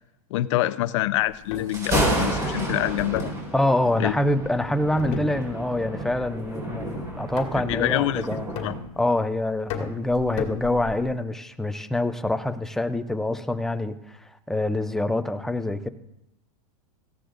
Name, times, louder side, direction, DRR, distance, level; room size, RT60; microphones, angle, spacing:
voice 1, 0.3-3.3 4.0-4.2 7.7-8.7, left 15 dB, 55° left, 15 dB, 0.6 m, -26 dB
sound 1, 1.3-1.8 3.2-4.2 5.0-5.8 6.1-6.5 7.4-7.9 8.6-9.2 9.7-11.2, left 5 dB, 35° left, 2.1 m, -34 dB
Thunder, 1.5-8.8, right 1 dB, 15° right, 4.7 m, -30 dB
voice 2, 3.5-8.5 9.0-14.2 14.5-15.9, left 1 dB, ahead, 9 dB, 0.4 m, -25 dB
18.0 x 15.0 x 2.5 m, 0.84 s
supercardioid pair, 155°, 19 cm